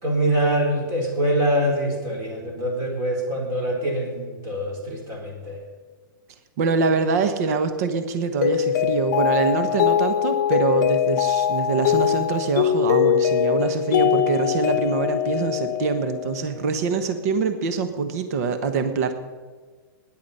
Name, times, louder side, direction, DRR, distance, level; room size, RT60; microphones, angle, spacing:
voice 1, 0.0-5.6, right 1 dB, 25° right, 1 dB, 3.8 m, -24 dB
voice 2, 6.6-19.1, right 5 dB, 45° right, 8 dB, 1.2 m, -24 dB
Mallet percussion, 8.4-16.6, left 9 dB, 55° left, 0.8 m, -22 dB
17.0 x 10.5 x 5.6 m, 1.5 s
hypercardioid pair, 165°, 11 cm